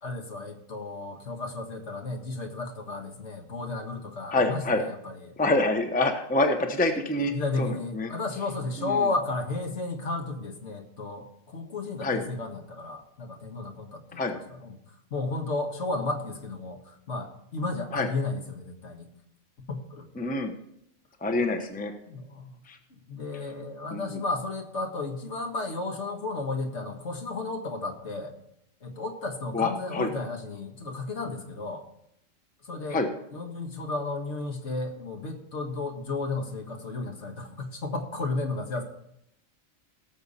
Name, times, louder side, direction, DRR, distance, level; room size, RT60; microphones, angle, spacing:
voice 1, 0.0-5.4 7.3-14.8 15.1-19.1 19.7-20.1 22.1-22.6 22.9-28.3 28.8-31.8 32.6-33.0 33.3-38.8, left 3 dB, 60° left, 3 dB, 1.8 m, -33 dB
voice 2, 4.3-4.8 5.4-8.1 8.8-9.0 12.0-12.2 14.2-14.4 17.9-18.1 20.2-20.5 21.2-21.9 22.7-22.8 23.9-24.2 29.5-30.1 32.9-33.1, left 2 dB, 10° left, 6 dB, 0.8 m, -26 dB
18.0 x 6.8 x 4.2 m, 0.78 s
omnidirectional pair, 1.3 m